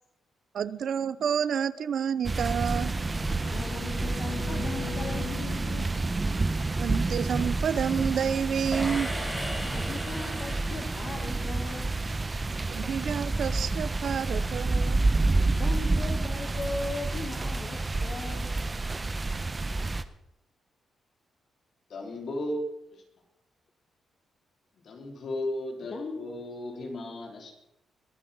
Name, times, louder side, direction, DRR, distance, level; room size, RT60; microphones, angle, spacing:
voice 1, 0.5-2.9 6.8-9.1 12.7-15.0, right 8 dB, 60° right, 18 dB, 0.5 m, -29 dB
Bowed string instrument, 2.1-5.5, left 6 dB, 70° left, 0.9 m, -42 dB
sound 1, 2.2-20.0, right 3 dB, 20° right, 0.8 m, -29 dB
voice 2, 3.5-6.0 9.7-11.9 15.5-18.5 25.9-26.2, left 3 dB, 40° left, 4 dB, 1.4 m, -38 dB
sound 2, 8.7-11.9, equal, ahead, 2.8 m, -38 dB
voice 3, 21.9-22.6 22.9-23.0 24.7-27.5, left 1 dB, 55° left, 1 dB, 4.1 m, -35 dB
22.0 x 8.6 x 5.4 m, 0.85 s
cardioid pair, 140°, 0 cm